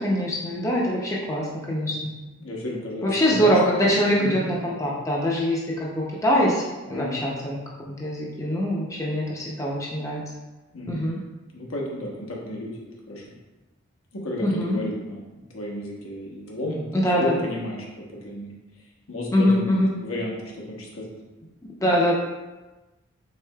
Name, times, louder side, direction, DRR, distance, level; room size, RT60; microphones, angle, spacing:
voice 1, 0.0-2.1 3.0-7.6 7.9-10.2 10.9-11.2 14.4-14.8 16.9-17.3 19.3-19.9 21.8-22.1, equal, 15° left, -4 dB, 0.5 m, -23 dB
voice 2, 2.4-4.4 6.9-7.2 10.7-11.0 11.5-13.4 14.1-16.8 17.1-18.5 19.1-21.1, left 1 dB, 85° left, -3 dB, 1.0 m, -33 dB
4.8 x 3.6 x 2.2 m, 1.1 s
head